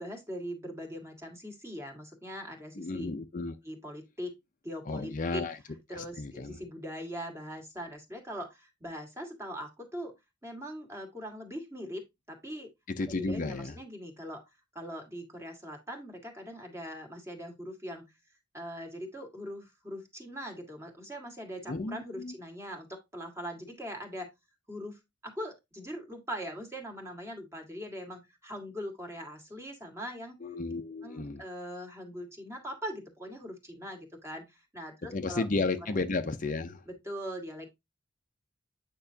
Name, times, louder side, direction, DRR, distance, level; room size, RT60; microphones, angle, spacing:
voice 1, 0.0-3.1 3.6-4.4 4.6-5.5 5.9-10.1 10.4-12.0 12.3-12.7 13.0-14.4 14.7-18.1 18.5-24.3 24.7-30.4 31.0-35.5 36.9-37.7, equal, 15° right, 1.8 m, -41 dB
voice 2, 2.8-3.5 4.9-5.6 5.9-6.6 12.9-13.7 21.7-22.3 30.4-31.4 35.1-36.8, left 3 dB, 45° left, 0.6 m, -33 dB
8.9 x 5.4 x 2.7 m
head